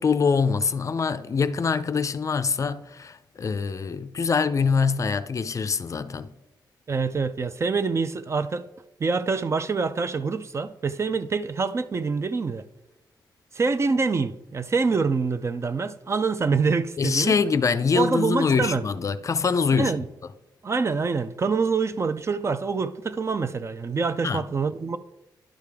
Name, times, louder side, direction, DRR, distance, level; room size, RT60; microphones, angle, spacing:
voice 1, 0.0-6.3 17.0-19.9 24.2-24.4, left 5 dB, 40° left, 0.4 m, -24 dB
voice 2, 6.9-8.7 9.0-12.7 13.5-17.3 17.9-18.8 19.7-20.0 20.6-25.0, right 4 dB, 35° right, 0.4 m, -25 dB
11.5 x 4.9 x 3.4 m
cardioid pair, 95°, 8 cm